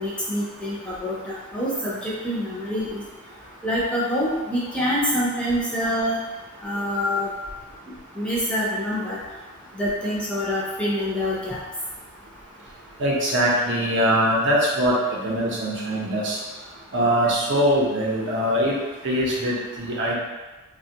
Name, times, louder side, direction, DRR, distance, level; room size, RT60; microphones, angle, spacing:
voice 1, 0.0-3.0 3.6-6.2 6.6-7.3 8.2-9.2 9.8-11.6, equal, 5° left, -7 dB, 0.5 m, -26 dB
voice 2, 13.0-16.4 16.9-18.8 19.0-20.1, equal, 55° right, -4 dB, 0.7 m, -22 dB
3.2 x 2.2 x 2.8 m, 1.2 s
head